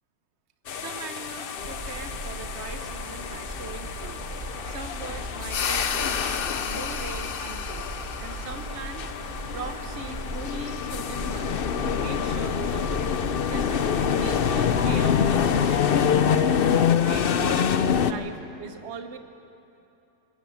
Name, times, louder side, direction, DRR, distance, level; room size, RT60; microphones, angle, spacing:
sound 1, 0.7-18.1, left 7 dB, 65° left, 0.5 m, -26 dB
voice 1, 0.7-4.2 4.6-7.9 8.2-9.1 9.4-13.1 13.4-16.7 17.0-17.7 18.0-19.2, right 4 dB, 45° right, 7 dB, 1.3 m, -40 dB
sound 2, 1.6-15.5, right 1 dB, 25° right, 2.5 m, -37 dB
sound 3, 1.6-12.4, right 3 dB, 90° right, 2.5 m, -52 dB
20.0 x 18.5 x 8.5 m, 2.9 s
omnidirectional pair, 1.8 m